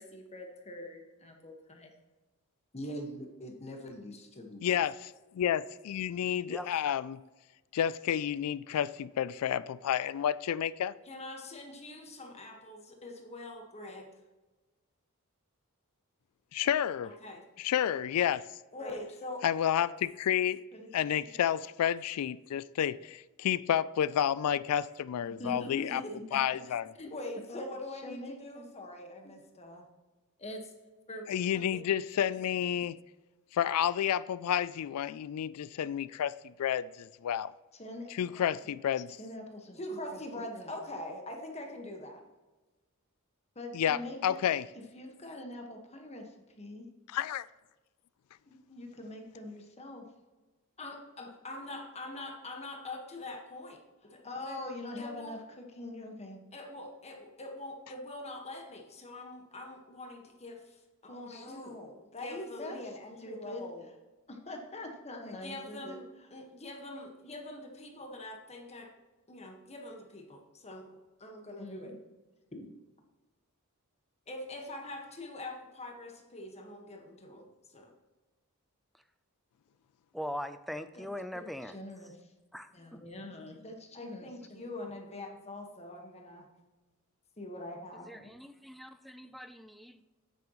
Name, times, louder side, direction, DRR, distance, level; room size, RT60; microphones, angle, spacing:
voice 1, 0.0-1.9 2.7-4.8 11.0-14.1 17.0-17.4 18.7-19.4 20.7-20.9 21.2-21.3 25.4-29.8 30.4-30.7 31.1-31.2 37.8-38.4 39.2-42.2 43.5-46.8 48.5-50.0 50.8-64.0 64.3-68.9 69.3-72.0 72.5-72.7 74.3-77.9 80.9-81.1 81.3-82.1 82.7-86.5 87.4-88.3, left 1 dB, 30° left, 1.5 m, -43 dB
voice 2, 4.6-7.2 7.7-10.9 16.5-17.1 17.6-18.5 19.4-20.6 20.9-26.0 26.3-26.8 31.3-33.0 33.5-37.5 38.2-39.1 43.7-44.6 47.1-47.5, left 9 dB, 80° left, 0.3 m, -30 dB
voice 3, 80.1-81.8 82.5-83.0 88.1-90.0, equal, ahead, 0.5 m, -41 dB
9.4 x 8.9 x 3.1 m
head